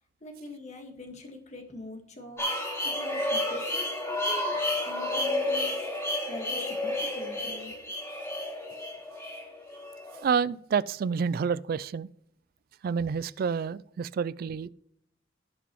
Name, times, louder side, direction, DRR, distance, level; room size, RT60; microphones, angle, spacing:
voice 1, 0.2-7.7, left 1 dB, 40° left, 1.6 m, -44 dB
sound 1, 2.4-10.2, left 1 dB, 15° left, 2.6 m, -31 dB
voice 2, 10.2-12.1 12.8-14.7, right 6 dB, 50° right, 0.3 m, -28 dB
17.0 x 6.1 x 3.1 m
head